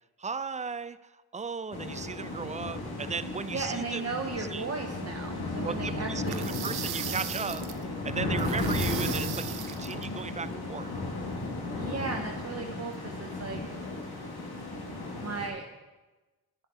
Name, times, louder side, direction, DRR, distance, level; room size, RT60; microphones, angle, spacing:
voice 1, 0.2-4.7 5.6-10.9, right 5 dB, 20° right, 15 dB, 0.3 m, -36 dB
sound 1, 1.7-15.5, left 2 dB, 80° left, 1.6 m, -34 dB
voice 2, 3.5-6.3 11.8-13.6 15.2-15.6, right 4 dB, 40° right, 3 dB, 0.8 m, -36 dB
sound 2, 6.3-7.8 8.4-10.1, right 10 dB, 85° right, 0.6 m, -38 dB
9.8 x 9.7 x 3.5 m, 1.2 s
cardioid pair, 55°, 37 cm